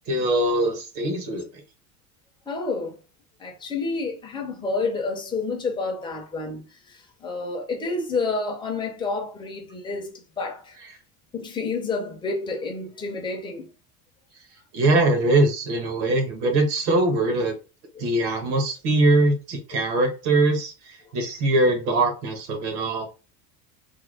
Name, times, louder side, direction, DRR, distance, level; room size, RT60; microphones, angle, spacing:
voice 1, 0.1-1.5 14.7-17.5 18.0-23.1, right 2 dB, 70° right, 1.4 m, -22 dB
voice 2, 2.5-3.0 3.4-10.8 11.3-13.7 17.9-18.0, left 3 dB, 10° left, 0.4 m, -29 dB
3.5 x 2.1 x 3.3 m
cardioid pair, 160°, 46 cm